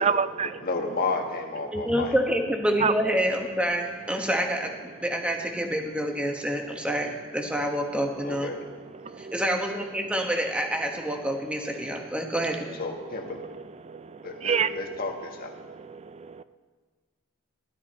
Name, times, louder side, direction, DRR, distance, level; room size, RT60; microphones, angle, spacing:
voice 1, 0.0-0.6 2.8-2.9 8.9-9.4 11.9-12.2 13.4-15.0 15.6-16.4, right 6 dB, 30° right, 14 dB, 0.4 m, -29 dB
voice 2, 0.6-2.1 8.2-8.6 12.8-13.4 14.2-15.6, left 3 dB, 45° left, 2 dB, 1.5 m, -32 dB
voice 3, 1.7-8.5 9.2-12.8, equal, 5° right, 2 dB, 1.2 m, -27 dB
15.5 x 12.0 x 4.3 m, 1.5 s
head